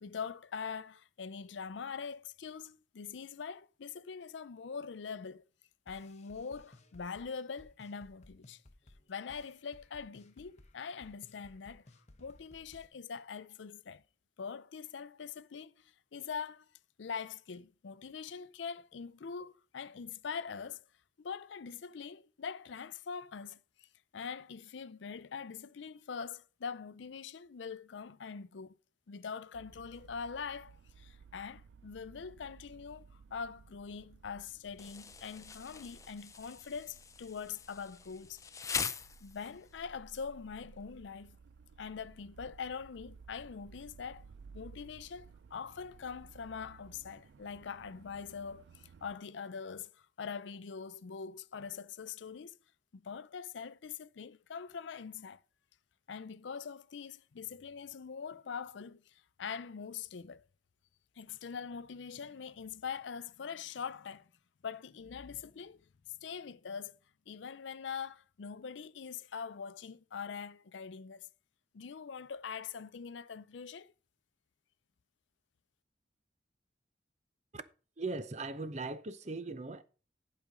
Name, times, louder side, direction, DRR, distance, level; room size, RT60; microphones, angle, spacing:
voice 1, 0.0-5.4 5.9-8.6 9.1-11.8 12.2-14.0 14.4-16.7 17.0-20.8 21.2-23.9 24.1-28.7 29.1-38.4 39.2-41.4 41.8-44.3 44.5-52.6 52.9-55.4 56.1-60.5 61.2-64.3 64.6-65.8 66.2-67.0 67.3-71.3 71.7-73.9, left 6 dB, 75° left, 0.5 m, -43 dB
sound 1, 5.9-12.9, left 1 dB, 35° left, 0.9 m, -60 dB
sound 2, 29.5-49.2, right 5 dB, 70° right, 0.4 m, -57 dB
Insect, 34.8-39.8, left 6 dB, 15° left, 0.4 m, -42 dB
voice 2, 78.0-79.8, right 3 dB, 40° right, 0.7 m, -39 dB
11.0 x 5.0 x 5.1 m
head